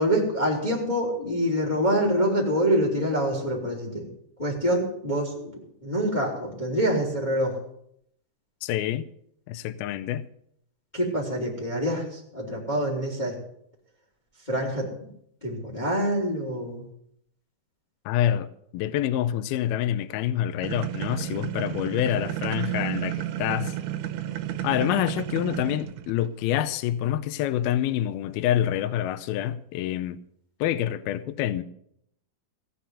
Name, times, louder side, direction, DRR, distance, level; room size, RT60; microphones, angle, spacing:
voice 1, 0.0-4.0 4.4-7.6 10.9-13.3 14.5-15.1 15.4-16.8, equal, 10° left, 2.6 m, -26 dB
voice 2, 8.6-9.1 9.5-10.2 18.1-18.5 18.7-23.7 24.6-30.2 30.6-31.6, left 11 dB, 80° left, 2.5 m, -27 dB
sound 1, 20.6-26.3, right 12 dB, 85° right, 2.8 m, -32 dB
17.5 x 6.0 x 9.5 m
omnidirectional pair, 4.5 m